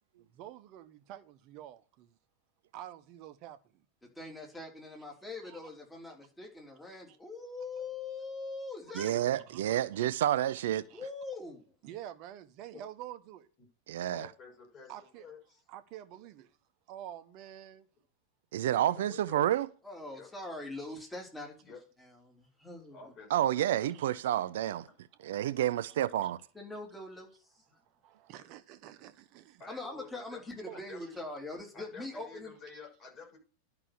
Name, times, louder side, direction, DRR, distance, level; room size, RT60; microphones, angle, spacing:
voice 1, 0.2-2.1 2.7-3.8 5.4-5.7 7.1-7.2 9.3-9.4 9.9-10.1 10.5-10.6 10.9-11.0 11.8-13.5 14.9-15.2 15.7-16.5 16.9-17.9 23.9-24.0 25.2-25.3 25.9-26.0 26.2-26.3 28.0-29.6 30.7-31.2, right 12 dB, 40° right, 1.1 m, -48 dB
voice 2, 4.0-9.2 10.9-11.6 19.8-21.7 22.0-23.0 26.5-27.4 29.7-32.5, left 2 dB, 10° left, 3.4 m, -42 dB
voice 3, 8.9-10.9 13.9-14.3 18.5-19.7 23.3-24.9 25.2-26.4, right 12 dB, 55° right, 0.5 m, -29 dB
voice 4, 14.1-15.6 18.8-19.5 20.1-20.3 21.6-21.8 22.9-23.4 29.6-30.4 30.7-31.0 31.7-33.4, left 4 dB, 30° left, 6.8 m, -50 dB
11.5 x 5.9 x 6.7 m
figure-of-eight pair, 90°, 0 cm